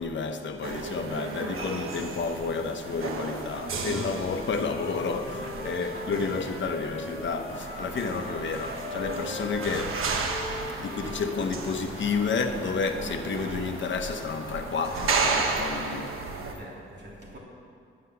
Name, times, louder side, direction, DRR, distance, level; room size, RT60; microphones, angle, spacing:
voice 1, 0.0-10.1 10.8-16.1, left 5 dB, 65° left, 6 dB, 0.9 m, -31 dB
sound 1, 0.6-16.5, right 4 dB, 85° right, 1.1 m, -34 dB
voice 2, 3.9-4.4 4.9-5.0 5.4-5.7 16.3-17.4, equal, 55° right, -3 dB, 2.5 m, -45 dB
Wind instrument woodwind instrument, 4.0-12.5, left 2 dB, 30° left, 1.7 m, -40 dB
sound 2, 7.7-16.0, equal, 30° right, 3.4 m, -47 dB
9.7 x 8.8 x 6.9 m, 2.4 s
wide cardioid pair, 135°, 21 cm